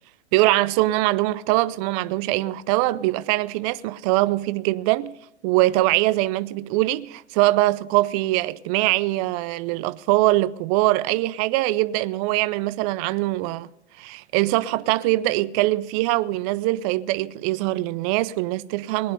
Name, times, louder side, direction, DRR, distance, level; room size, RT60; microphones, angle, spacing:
voice 1, 0.3-5.2 5.4-13.7 14.0-19.1, right 18 dB, 35° right, 0.5 m, -22 dB
19.0 x 10.0 x 5.4 m
hypercardioid pair, 110°, 35 cm